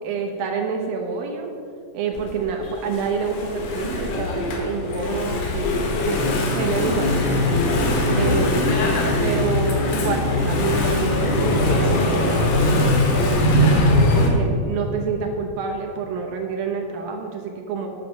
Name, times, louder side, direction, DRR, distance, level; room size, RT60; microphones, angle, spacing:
voice 1, 0.0-1.5 1.9-7.5 8.1-8.8 9.2-12.8 13.1-17.9, right 5 dB, 75° right, 2 dB, 2.6 m, -28 dB
Engine / Mechanisms, 2.1-14.3, left 1 dB, 80° left, 3.2 m, -21 dB
sound 1, 6.2-13.7, left 4 dB, 55° right, 1.6 m, -29 dB
10.5 x 8.0 x 6.1 m, 2.4 s
omnidirectional pair, 4.4 m